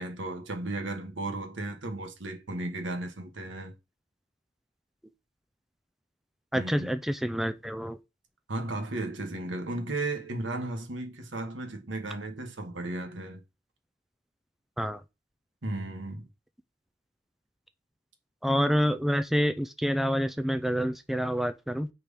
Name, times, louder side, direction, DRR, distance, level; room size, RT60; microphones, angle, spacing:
voice 1, 0.0-3.7 6.5-6.9 8.5-13.4 15.6-16.3, right 2 dB, 85° right, 1.4 m, -35 dB
voice 2, 6.5-8.0 14.8-15.0 18.4-21.9, equal, ahead, 0.3 m, -27 dB
4.9 x 4.4 x 5.2 m
head